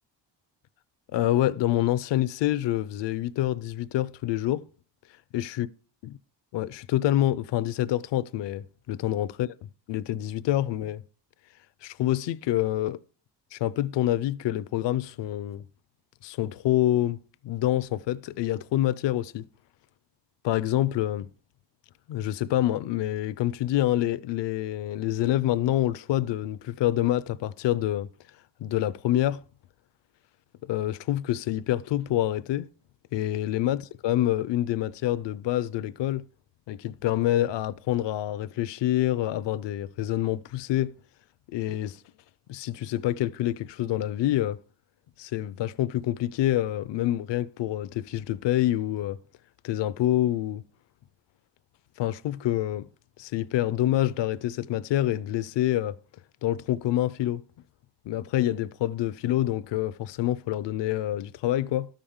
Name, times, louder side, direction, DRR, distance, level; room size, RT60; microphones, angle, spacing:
voice 1, 1.1-4.7 5.3-5.7 6.0-6.2 6.5-9.5 9.9-11.0 11.8-13.0 13.5-15.6 16.2-19.4 20.4-21.3 22.1-28.1 28.6-29.4 30.7-32.7 33.1-36.2 36.7-40.9 41.5-42.0 42.5-44.6 45.2-49.2 49.6-50.6 52.0-52.9 53.2-56.0 56.4-57.4 58.1-61.9, left 13 dB, 70° left, 0.5 m, -27 dB
13.0 x 5.1 x 7.1 m
wide cardioid pair, 160°, 44 cm